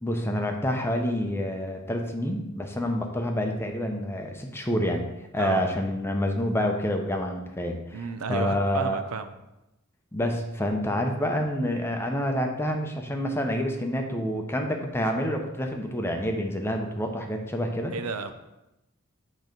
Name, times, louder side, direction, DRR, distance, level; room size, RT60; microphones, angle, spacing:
voice 1, 0.0-5.1 5.3-9.0 10.1-17.9, equal, 10° left, 3 dB, 0.7 m, -28 dB
voice 2, 7.9-9.3 17.9-18.3, right 4 dB, 85° right, 9 dB, 0.5 m, -32 dB
7.9 x 3.1 x 5.2 m, 0.94 s
head